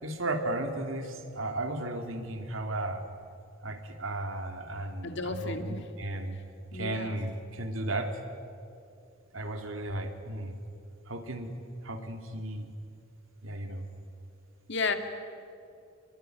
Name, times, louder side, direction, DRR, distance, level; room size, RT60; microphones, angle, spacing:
voice 1, 0.0-3.0 3.6-6.4 6.7-8.1 9.3-10.6 11.1-11.5 11.8-12.7 13.4-13.9, right 1 dB, 85° right, 5 dB, 3.0 m, -35 dB
voice 2, 5.0-5.9 6.7-7.2 14.7-14.9, left 4 dB, 65° left, 6 dB, 2.3 m, -33 dB
27.0 x 22.0 x 9.4 m, 2.5 s
head